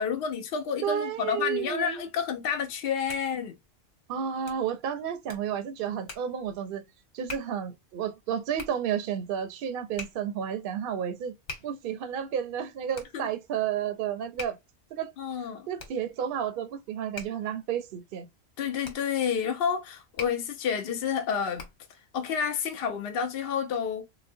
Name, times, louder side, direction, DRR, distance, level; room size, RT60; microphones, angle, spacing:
voice 1, 0.0-3.5 13.1-13.3 15.2-15.7 18.6-21.6 22.1-24.0, left 7 dB, 65° left, 0.8 m, -29 dB
voice 2, 0.8-2.0 4.1-6.8 7.1-11.3 11.6-14.6 14.9-15.1 15.7-18.3, right 8 dB, 65° right, 0.7 m, -31 dB
Hands, 2.9-22.0, left 4 dB, 85° left, 1.4 m, -47 dB
3.9 x 2.0 x 2.6 m
omnidirectional pair, 1.1 m